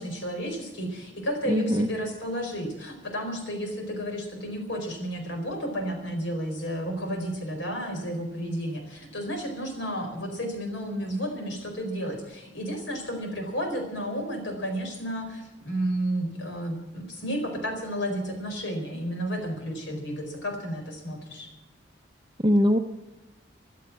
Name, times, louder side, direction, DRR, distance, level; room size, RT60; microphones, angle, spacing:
voice 1, 0.0-21.5, equal, 70° left, 4 dB, 4.4 m, -32 dB
voice 2, 1.4-1.9 22.4-22.8, equal, 20° right, 6 dB, 0.7 m, -21 dB
14.0 x 12.5 x 7.2 m, 1.0 s
head